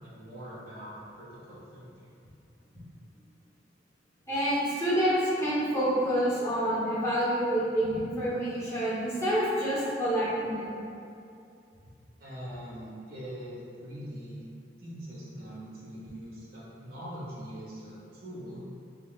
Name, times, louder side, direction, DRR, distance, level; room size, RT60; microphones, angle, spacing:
voice 1, 0.0-2.1 12.2-14.5 14.8-18.6, equal, 55° right, -8 dB, 1.2 m, -42 dB
voice 2, 4.3-10.7, equal, 15° left, -10 dB, 1.0 m, -27 dB
5.6 x 2.3 x 2.4 m, 2.6 s
head